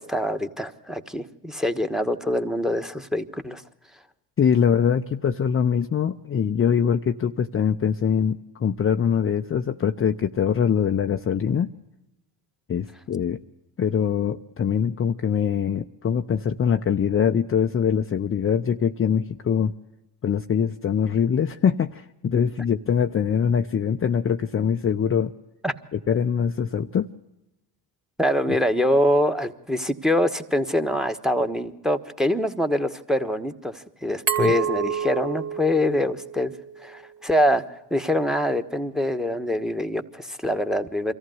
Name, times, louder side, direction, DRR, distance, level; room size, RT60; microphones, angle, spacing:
voice 1, 0.0-3.6 25.6-25.7 28.2-36.5 36.8-41.1, left 1 dB, ahead, 8 dB, 1.3 m, -24 dB
voice 2, 4.4-11.7 12.7-13.4 13.8-19.7 20.2-25.3 25.9-27.1 34.4-34.5, left 7 dB, 25° left, 6 dB, 0.6 m, -23 dB
Glass, 34.3-37.1, right 8 dB, 70° right, 3.2 m, -29 dB
24.0 x 14.5 x 7.9 m, 0.95 s
supercardioid pair, 70°, 48 cm